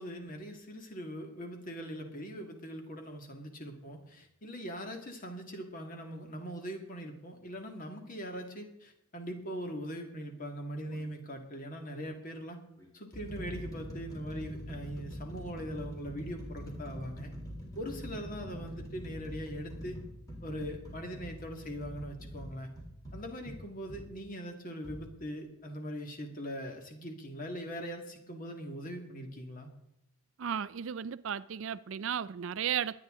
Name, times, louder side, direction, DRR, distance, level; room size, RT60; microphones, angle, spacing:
voice 1, 0.0-12.6 12.9-17.3 17.8-20.0 20.4-22.7 23.1-29.7, equal, 40° left, 2.1 m, -41 dB
sound 1, 10.8-11.1 12.0-12.1 12.8-24.1 24.8-25.0, equal, 15° left, 3.4 m, -44 dB
voice 2, 30.4-33.0, right 8 dB, 60° right, 0.4 m, -34 dB
23.0 x 9.5 x 3.8 m
head